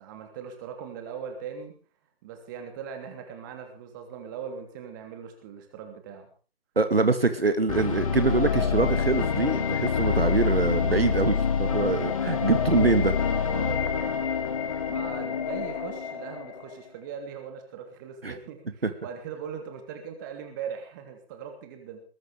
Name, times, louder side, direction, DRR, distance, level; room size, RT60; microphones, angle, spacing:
voice 1, 0.0-1.7 2.2-6.3 13.2-14.1 14.9-22.0, right 7 dB, 20° right, 5 dB, 3.0 m, -40 dB
voice 2, 6.8-13.2 18.2-18.4 18.8-18.9, right 3 dB, 70° right, 10 dB, 2.5 m, -24 dB
sound 1, 7.7-16.7, left 6 dB, 35° left, 2.1 m, -27 dB
21.0 x 12.5 x 5.0 m, 0.38 s
figure-of-eight pair, 150°, 31 cm